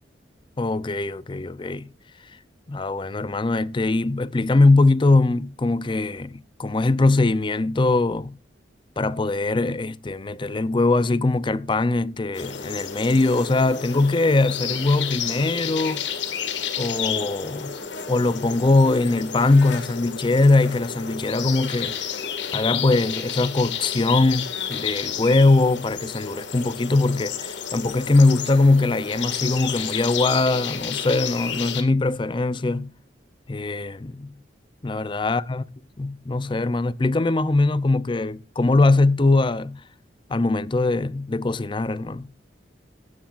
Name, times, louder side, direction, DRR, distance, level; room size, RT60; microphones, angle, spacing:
voice 1, 0.6-1.9 2.7-8.3 9.0-16.0 16.8-17.8 18.1-21.9 22.5-32.9 33.5-34.3 34.8-35.6 36.0-39.8 40.3-42.3, left 2 dB, 25° left, 0.5 m, -21 dB
sound 1, 12.3-31.8, left 7 dB, 75° left, 1.9 m, -31 dB
16.0 x 13.0 x 2.5 m
head